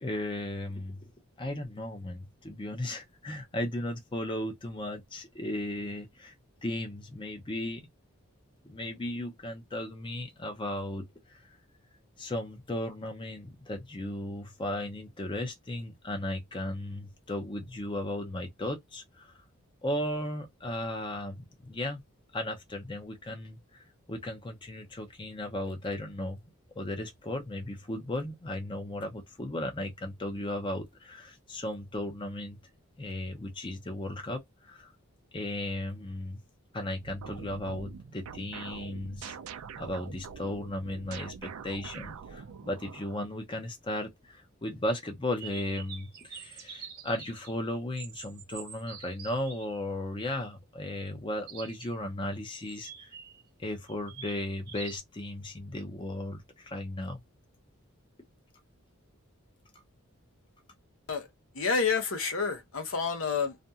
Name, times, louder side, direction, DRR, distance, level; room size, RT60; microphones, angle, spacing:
voice 1, 0.0-1.1 1.4-6.3 6.6-7.9 8.6-11.4 12.2-19.3 19.8-22.0 22.3-23.8 24.1-26.4 26.7-32.6 33.0-34.9 35.3-36.4 36.7-53.1 53.6-57.2, left 1 dB, 25° left, 0.6 m, -36 dB
sound 1, 37.0-43.2, right 6 dB, 80° right, 0.4 m, -45 dB
sound 2, 45.4-47.5 48.0-49.7 51.5-51.9 52.4-53.4 53.9-55.0, right 7 dB, 50° right, 0.8 m, -46 dB
voice 2, 61.5-63.5, left 5 dB, 65° left, 0.8 m, -29 dB
2.5 x 2.2 x 2.7 m
head